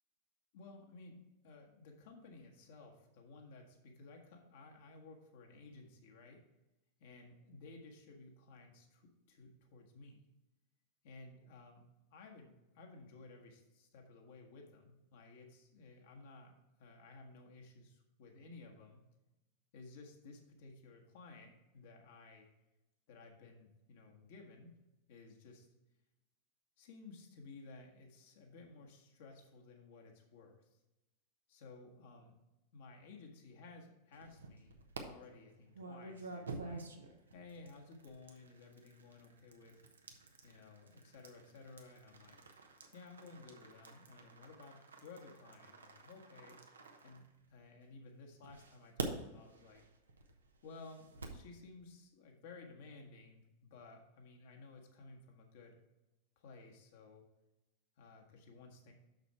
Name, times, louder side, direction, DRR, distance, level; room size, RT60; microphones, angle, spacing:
voice 1, 0.5-1.2 1.4-6.4 7.0-10.3 11.0-16.5 16.8-19.0 19.7-22.5 23.1-24.7 25.1-25.7 26.8-30.8 31.5-32.4 32.7-34.7 35.0-36.9 37.3-39.8 40.4-42.4 42.9-46.6 47.0-49.8 50.6-55.8 56.4-57.2 58.0-58.9, left 3 dB, 55° left, 1 dB, 1.5 m, -56 dB
sound 1, 34.1-35.0 35.7-47.8 48.4-51.5, right 4 dB, 70° right, 1.0 m, -49 dB
6.6 x 6.4 x 4.5 m, 0.97 s
figure-of-eight pair, 90°, 0 cm